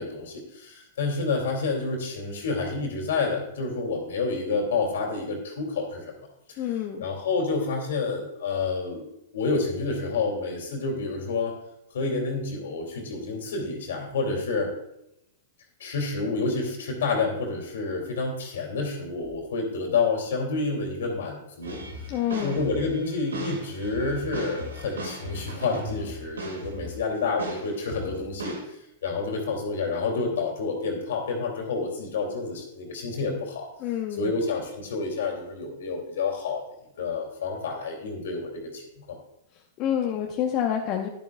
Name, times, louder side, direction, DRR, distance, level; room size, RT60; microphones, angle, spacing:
voice 1, 0.0-6.1 7.0-11.5 11.9-14.7 15.8-21.8 22.4-28.6 29.0-33.7 34.2-36.6 37.0-39.2, left 4 dB, 75° left, 2 dB, 2.7 m, -29 dB
voice 2, 6.6-7.0 22.1-22.5 33.8-34.3 39.8-41.1, left 10 dB, 40° left, 1 dB, 0.9 m, -27 dB
sound 1, 21.6-27.1 27.4-28.6, right 1 dB, 85° right, 2.2 m, -38 dB
11.0 x 10.5 x 2.3 m, 0.84 s
hypercardioid pair, 110°, 0 cm